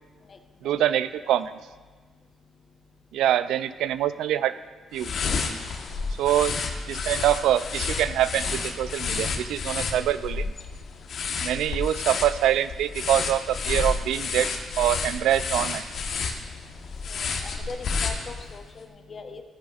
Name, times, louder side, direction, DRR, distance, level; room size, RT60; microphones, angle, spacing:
voice 1, 0.6-1.5 3.1-4.5 4.9-5.1 6.2-6.6 6.9-10.5 11.4-15.9, right 11 dB, 85° right, 14 dB, 0.3 m, -24 dB
sound 1, 4.9-18.6, left 4 dB, 60° left, 1.1 m, -30 dB
voice 2, 17.1-19.4, left 4 dB, 40° left, 6 dB, 0.9 m, -41 dB
14.0 x 10.5 x 2.4 m, 1.4 s
cardioid pair, 90°, 0 cm